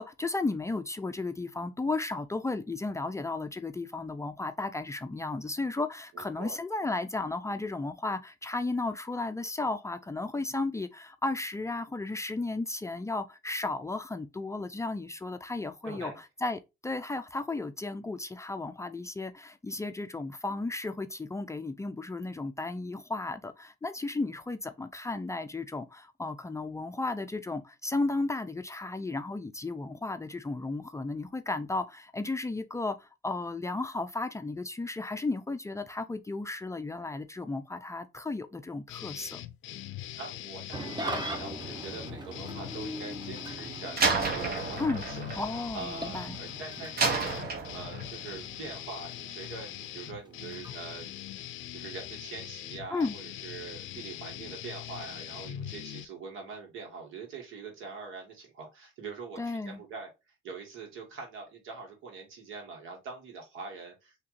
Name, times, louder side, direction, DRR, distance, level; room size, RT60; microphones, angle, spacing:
voice 1, 0.0-39.4 44.8-45.0 45.4-46.4 52.9-53.2 59.4-59.8, left 3 dB, 15° left, 0.4 m, -34 dB
voice 2, 6.1-6.6 15.8-16.2 40.2-45.3 45.7-51.1 51.7-60.1 60.4-64.2, right 4 dB, 85° right, 1.6 m, -43 dB
sound 1, 38.9-56.1, left 13 dB, 80° left, 0.4 m, -42 dB
Engine starting / Idling, 40.7-51.3, right 1 dB, 20° right, 1.0 m, -42 dB
Slam, 44.0-46.4 47.0-48.2, right 4 dB, 50° right, 1.1 m, -30 dB
3.6 x 2.9 x 3.1 m
cardioid pair, 90°, 20 cm